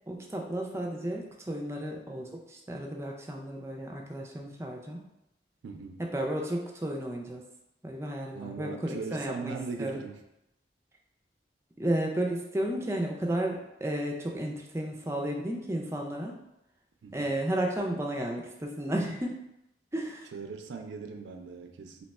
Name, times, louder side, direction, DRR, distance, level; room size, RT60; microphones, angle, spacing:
voice 1, 0.1-5.0 6.0-7.4 7.8-10.0 11.8-16.4 17.1-19.4 19.9-20.3, right 1 dB, 15° right, 1 dB, 0.4 m, -33 dB
voice 2, 5.6-6.0 8.3-10.2 17.0-17.3 20.3-22.0, right 4 dB, 85° right, 4 dB, 0.4 m, -39 dB
2.8 x 2.2 x 4.1 m, 0.87 s
head